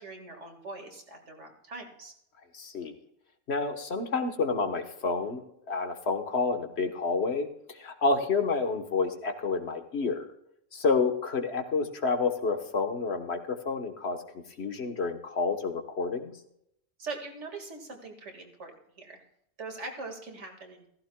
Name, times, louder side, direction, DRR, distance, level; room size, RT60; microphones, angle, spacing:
voice 1, 0.0-2.1 17.0-19.2 19.6-20.9, right 3 dB, 75° right, 3 dB, 2.2 m, -42 dB
voice 2, 2.5-2.9 3.5-5.4 5.7-10.3 10.7-14.2 14.6-16.3, left 4 dB, 60° left, 7 dB, 1.4 m, -29 dB
15.0 x 15.0 x 2.2 m, 0.74 s
omnidirectional pair, 1.2 m